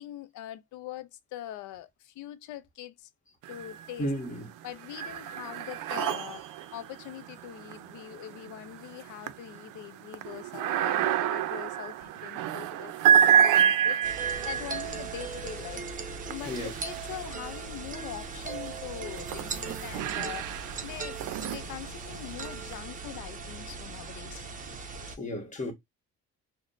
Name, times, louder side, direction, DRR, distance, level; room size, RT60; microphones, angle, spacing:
voice 1, 0.0-3.1 3.5-4.1 4.6-15.8 16.3-24.5, left 12 dB, 70° left, 0.5 m, -43 dB
sound 1, 3.4-4.1 4.5-17.6 18.3-22.7, right 8 dB, 80° right, 0.5 m, -29 dB
voice 2, 4.0-4.5 16.4-16.7 25.2-25.7, left 1 dB, 25° left, 1.2 m, -33 dB
sound 2, 14.0-25.2, right 4 dB, 25° right, 0.6 m, -39 dB
3.1 x 2.1 x 3.8 m
cardioid pair, 125°, 31 cm